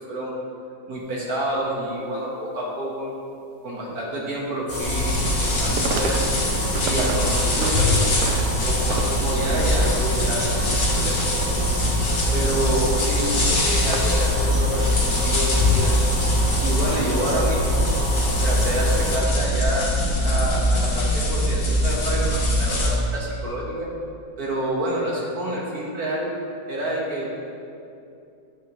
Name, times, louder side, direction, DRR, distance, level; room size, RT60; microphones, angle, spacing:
voice 1, 0.9-3.1 3.6-6.3 6.8-11.2 12.3-14.8 15.2-15.9 16.6-17.8 18.4-19.9 20.2-23.9 24.4-26.3 26.7-27.4, right 1 dB, 55° right, -3 dB, 1.9 m, -28 dB
sound 1, 1.0-1.1 1.5-1.6 3.8-3.9 4.4-4.5 5.0-5.4 5.6-6.2 6.5-7.2 7.5-8.4 8.7-12.7 12.9-15.8 16.5-17.3 17.8-18.1, right 6 dB, 75° right, 1.1 m, -34 dB
sound 2, 4.7-19.2, left 2 dB, 30° left, 2.3 m, -27 dB
sound 3, 4.8-22.9, equal, 75° left, 2.1 m, -23 dB
10.0 x 7.9 x 3.1 m, 2.6 s
omnidirectional pair, 1.9 m